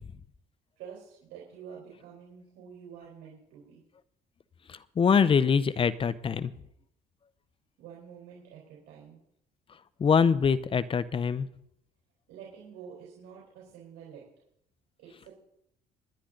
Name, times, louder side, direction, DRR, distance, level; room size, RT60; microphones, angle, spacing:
voice 1, 0.8-3.8 7.8-9.2 12.3-14.2 15.0-15.3, right 7 dB, 90° right, -4 dB, 4.4 m, -48 dB
voice 2, 4.7-6.5 10.0-11.5, left 6 dB, 30° left, 15 dB, 0.8 m, -24 dB
23.5 x 10.0 x 3.9 m, 0.76 s
cardioid pair, 110°, 17 cm